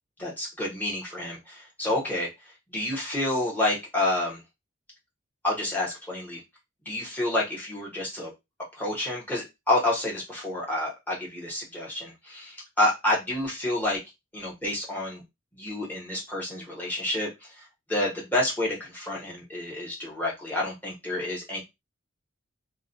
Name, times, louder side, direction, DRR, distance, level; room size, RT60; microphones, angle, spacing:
voice 1, 0.2-2.3 2.7-4.4 5.4-6.4 6.8-8.3 8.7-14.0 14.3-15.2 15.5-21.6, left 1 dB, 10° left, -4 dB, 0.8 m, -29 dB
2.3 x 2.1 x 2.5 m, 0.21 s
head